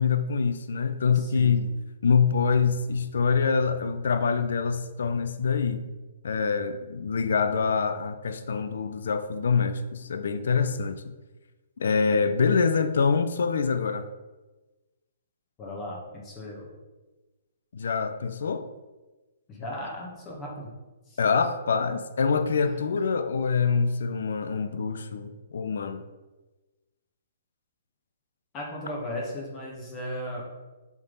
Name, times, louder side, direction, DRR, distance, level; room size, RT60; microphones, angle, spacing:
voice 1, 0.0-1.7 2.0-5.8 6.2-11.0 11.8-14.1 17.7-18.6 21.2-26.0, left 5 dB, 70° left, 10 dB, 0.5 m, -25 dB
voice 2, 1.1-1.7 15.6-16.7 19.5-20.7 21.1-21.2 22.6-22.7 28.5-30.4, left 1 dB, 25° left, -2 dB, 1.6 m, -36 dB
7.1 x 3.7 x 4.0 m, 1.2 s
hypercardioid pair, 135°, 0 cm